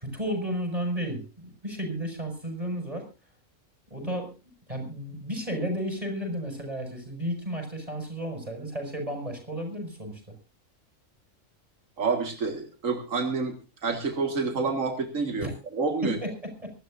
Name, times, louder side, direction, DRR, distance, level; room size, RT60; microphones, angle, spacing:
voice 1, 0.0-3.0 3.9-4.3 4.7-10.2 15.4-15.5 16.0-16.7, equal, 25° right, 4 dB, 6.6 m, -33 dB
voice 2, 12.0-13.6 13.8-16.2, right 4 dB, 85° right, 6 dB, 2.2 m, -28 dB
25.5 x 12.5 x 2.6 m, 0.32 s
omnidirectional pair, 1.3 m